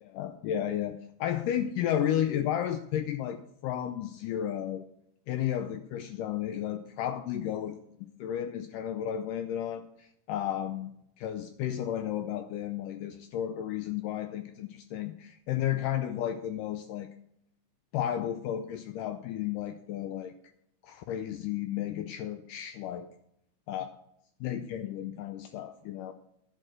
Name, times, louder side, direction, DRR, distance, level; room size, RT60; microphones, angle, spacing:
voice 1, 0.0-4.9 5.3-7.8 8.2-10.9 11.2-17.1 17.9-20.3 20.8-23.1 23.7-23.9 24.4-26.1, left 10 dB, 80° left, 8 dB, 1.9 m, -33 dB
10.5 x 4.9 x 7.5 m, 0.73 s
omnidirectional pair, 4.2 m